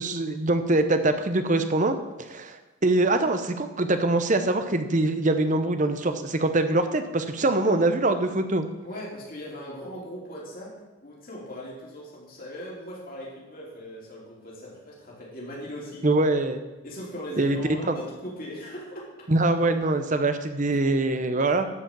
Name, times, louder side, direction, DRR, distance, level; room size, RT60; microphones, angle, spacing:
voice 1, 0.0-2.0 2.3-8.6 16.0-16.6 17.4-17.6 17.9-18.0 19.3-21.7, right 2 dB, 35° right, 9 dB, 0.8 m, -23 dB
voice 2, 8.8-10.7 11.0-16.0 16.8-19.3 20.7-20.8, equal, 40° left, -4 dB, 3.3 m, -39 dB
12.0 x 5.1 x 7.5 m, 1.1 s
head